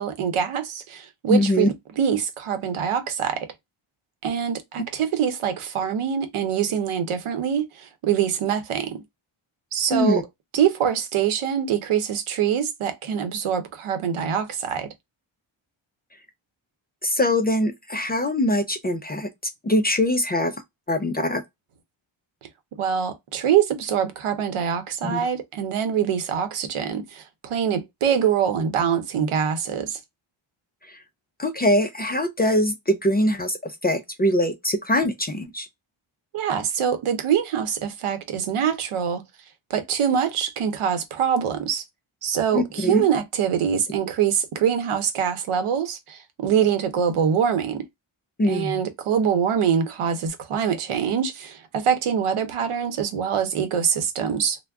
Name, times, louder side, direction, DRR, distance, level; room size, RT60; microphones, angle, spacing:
voice 1, 0.0-3.5 4.2-9.0 9.7-10.2 10.5-14.9 22.8-30.0 36.3-39.2 39.7-41.8 42.2-47.9 48.5-54.6, right 8 dB, 85° right, 0.8 m, -24 dB
voice 2, 1.3-1.7 9.9-10.2 17.0-19.3 19.6-20.5 20.9-21.4 25.0-25.3 30.9-31.0 31.4-35.7 42.5-43.1 48.4-48.8, left 1 dB, 20° left, 0.3 m, -22 dB
2.3 x 2.1 x 3.4 m
wide cardioid pair, 100°, 49 cm